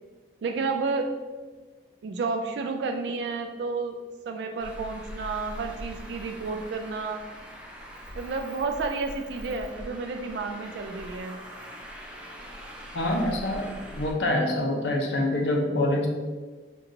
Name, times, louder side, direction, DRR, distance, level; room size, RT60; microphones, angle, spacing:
voice 1, 0.4-1.1 2.0-4.0 4.3-7.2 8.2-11.4, right 4 dB, 75° right, 5 dB, 0.3 m, -31 dB
Traffic noise roadway noise, 4.6-14.1, equal, 5° right, 0.4 m, -42 dB
voice 2, 12.9-16.1, left 1 dB, 80° left, 1 dB, 0.7 m, -26 dB
5.3 x 2.8 x 2.6 m, 1.4 s
head